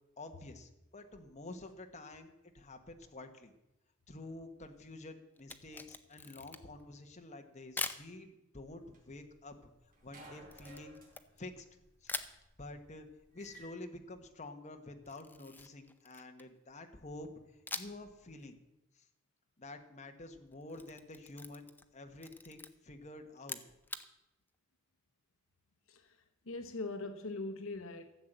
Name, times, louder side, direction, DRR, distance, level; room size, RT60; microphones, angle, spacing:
voice 1, 0.2-3.5 4.1-9.7 10.0-11.0 11.4-11.7 12.0-12.2 12.6-13.1 13.3-17.3 17.7-18.6 18.9-19.0 19.6-21.7 21.9-23.6, left 2 dB, 35° left, 1.3 m, -49 dB
Camera, 5.4-6.8 7.8-8.1 10.5-11.7 12.1-12.4 15.1-16.6 17.7-18.1 18.4-18.5 20.5-21.9 22.2-22.7 23.4-24.1, left 3 dB, 10° left, 0.7 m, -43 dB
sound 1, 8.7-9.6 9.9-13.7, right 1 dB, 40° right, 3.8 m, -56 dB
voice 2, 26.5-28.1, left 2 dB, 65° left, 1.0 m, -41 dB
14.0 x 7.7 x 7.9 m
head